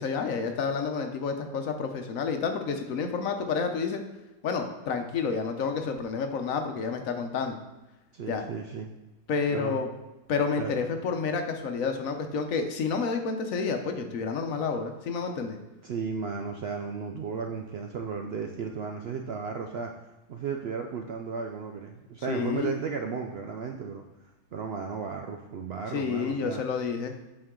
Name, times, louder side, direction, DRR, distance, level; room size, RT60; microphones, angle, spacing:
voice 1, 0.0-4.0 4.4-7.6 8.3-8.4 9.3-9.9 10.3-15.6 22.3-22.7 25.9-27.1, left 5 dB, 65° left, 5 dB, 1.0 m, -29 dB
voice 2, 8.1-8.9 9.5-9.8 10.6-10.7 15.8-19.9 20.3-26.6, right 5 dB, 85° right, 3 dB, 0.5 m, -34 dB
8.4 x 4.5 x 3.7 m, 1.0 s
omnidirectional pair, 1.6 m